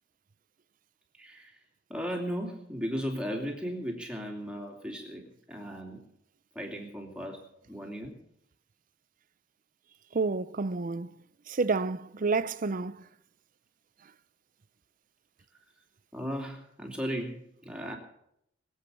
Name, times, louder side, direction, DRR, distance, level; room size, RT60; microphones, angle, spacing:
voice 1, 1.2-1.6 1.9-6.0 6.5-7.4 7.7-8.2 16.1-18.0, equal, 5° right, 2.7 m, -36 dB
voice 2, 10.1-11.1 11.5-13.1, right 4 dB, 45° right, 0.6 m, -29 dB
22.5 x 8.2 x 6.9 m
head